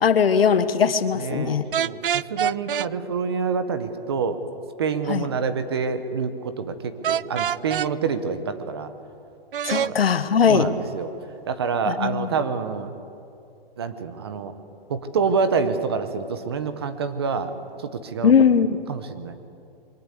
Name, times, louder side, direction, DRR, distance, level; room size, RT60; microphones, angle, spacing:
voice 1, 0.0-1.6 5.1-5.3 9.7-10.7 11.9-12.3 18.2-18.8, left 6 dB, 70° left, 12 dB, 1.4 m, -19 dB
voice 2, 1.1-4.4 4.8-8.9 9.8-10.0 10.5-11.1 11.5-12.9 13.8-14.5 14.9-17.5 17.8-18.3 18.9-19.3, right 5 dB, 25° right, 10 dB, 0.9 m, -27 dB
sound 1, 1.7-2.9 7.0-7.9 9.5-9.9, right 9 dB, 60° right, 0.4 m, -25 dB
23.0 x 19.0 x 8.2 m, 2.6 s
hypercardioid pair, 175°, 30 cm